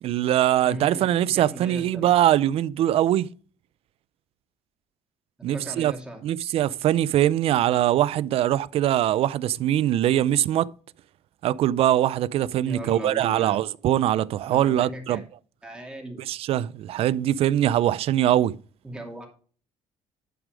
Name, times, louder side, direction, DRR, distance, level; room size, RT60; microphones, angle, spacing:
voice 1, 0.0-3.3 5.4-5.9 6.2-10.7 11.4-15.2 16.3-18.5, right 12 dB, 60° right, 0.4 m, -22 dB
voice 2, 0.6-2.1 5.5-6.2 12.6-13.6 14.5-15.2 15.6-16.2 18.8-19.3, right 1 dB, 10° right, 2.8 m, -37 dB
11.5 x 4.7 x 5.1 m
cardioid pair, 125°, 11 cm